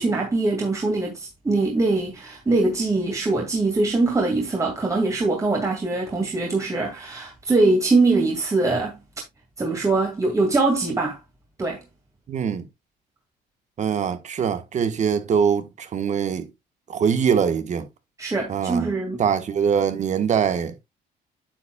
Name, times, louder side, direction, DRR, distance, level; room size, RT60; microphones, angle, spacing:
voice 1, 0.0-9.0 9.6-11.2 11.6-11.8 18.2-19.2, right 3 dB, 20° right, 2.2 m, -22 dB
voice 2, 12.3-12.7 13.8-16.5 16.9-17.9 18.5-18.9 19.2-20.7, right 7 dB, 45° right, 1.4 m, -23 dB
9.3 x 7.2 x 2.3 m
cardioid pair, 110°, 17 cm